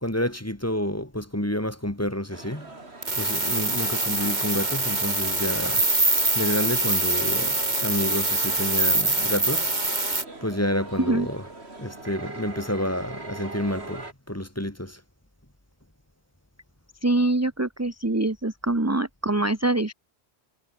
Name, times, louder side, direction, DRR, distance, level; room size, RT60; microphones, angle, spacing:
voice 1, 0.0-2.7 3.1-9.7 10.4-11.4 11.8-15.0, left 1 dB, 15° left, 2.5 m, -29 dB
sound 1, 2.3-14.1, right 2 dB, 85° right, 4.0 m, -41 dB
sound 2, 3.0-10.2, right 2 dB, 45° right, 3.2 m, -24 dB
voice 2, 17.0-19.9, right 2 dB, 15° right, 1.2 m, -24 dB
omnidirectional pair, 1.1 m